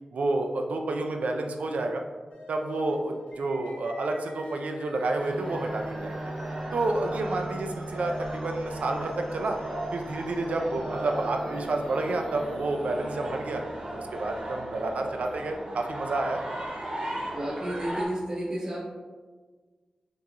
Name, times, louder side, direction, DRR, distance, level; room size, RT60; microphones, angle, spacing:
voice 1, 0.1-2.0 2.5-6.2 6.7-9.6 9.9-13.6 14.0-16.4, right 2 dB, 80° right, 3 dB, 0.5 m, -29 dB
sound 1, 2.3-8.3, left 2 dB, 85° left, 0.7 m, -48 dB
sound 2, 3.3-13.3, equal, 25° left, 0.9 m, -50 dB
sound 3, 5.1-18.1, right 1 dB, 45° right, 1.1 m, -36 dB
voice 2, 17.3-18.8, right 1 dB, 25° right, -5 dB, 0.6 m, -31 dB
5.9 x 3.0 x 2.6 m, 1.4 s
wide cardioid pair, 135°, 2 cm